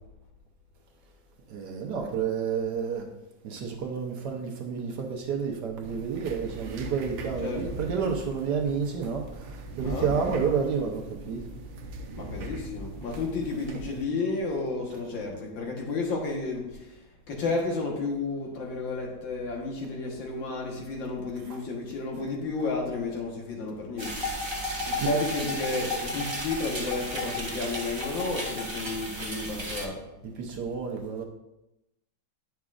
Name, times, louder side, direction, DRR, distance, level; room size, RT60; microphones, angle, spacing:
voice 1, 1.5-3.1 3.4-11.5 21.4-21.6 25.0-25.1 30.2-31.2, right 6 dB, 65° right, 1.4 m, -30 dB
sound 1, 5.8-14.0, right 2 dB, 85° right, 1.5 m, -40 dB
voice 2, 12.1-16.9 17.3-24.2 24.8-30.0, left 3 dB, 75° left, 2.1 m, -32 dB
sound 2, 24.0-29.9, left 1 dB, 20° right, 0.9 m, -33 dB
9.2 x 6.0 x 2.5 m
omnidirectional pair, 2.1 m